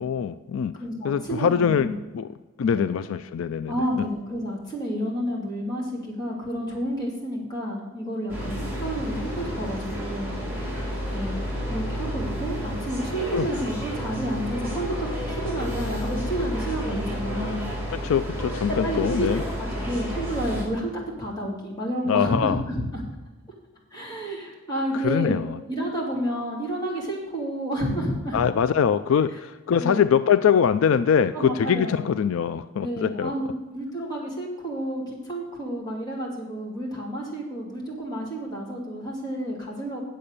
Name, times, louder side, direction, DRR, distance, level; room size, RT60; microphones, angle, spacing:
voice 1, 0.0-0.7 1.0-2.3 2.6-3.7 13.3-13.5 17.9-19.4 22.1-22.6 25.0-25.6 28.3-33.3, left 7 dB, 75° left, 12 dB, 0.4 m, -23 dB
voice 2, 0.8-1.9 2.7-2.9 3.7-10.4 11.1-17.6 18.7-20.9 21.2-23.1 23.9-25.4 25.7-28.4 29.8-30.2 31.3-32.1 32.8-40.0, equal, 20° left, -4 dB, 3.0 m, -30 dB
sound 1, 8.3-20.6, equal, 10° right, 4.1 m, -31 dB
8.7 x 7.7 x 6.7 m, 1.2 s
head